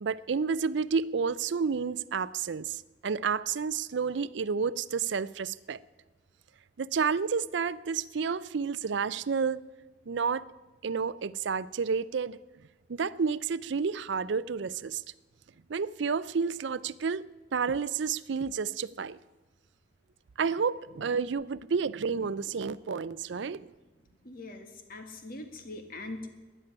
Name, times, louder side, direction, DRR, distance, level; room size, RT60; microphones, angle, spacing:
voice 1, 0.0-5.8 6.8-9.7 10.1-10.5 10.8-12.4 12.9-15.0 15.7-17.2 17.5-19.2 20.4-23.7, right 5 dB, 70° right, 0.5 m, -30 dB
voice 2, 24.2-26.3, left 2 dB, 45° left, 2.0 m, -42 dB
13.5 x 10.0 x 9.9 m
head